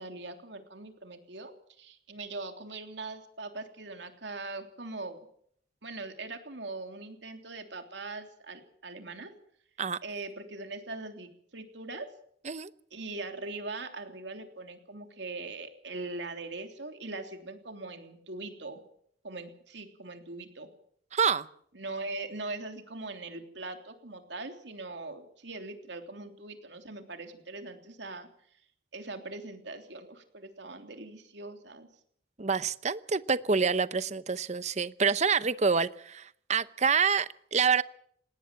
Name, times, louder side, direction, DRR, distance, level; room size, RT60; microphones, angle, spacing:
voice 1, 0.0-1.5 1.8-5.2 5.8-9.3 10.0-12.1 12.9-18.8 19.2-20.7 21.7-28.3 28.9-31.9, right 3 dB, 65° right, 6 dB, 3.3 m, -41 dB
voice 2, 21.1-21.5 32.4-37.8, right 5 dB, 35° right, 15 dB, 0.8 m, -27 dB
19.5 x 18.5 x 7.6 m, 0.65 s
head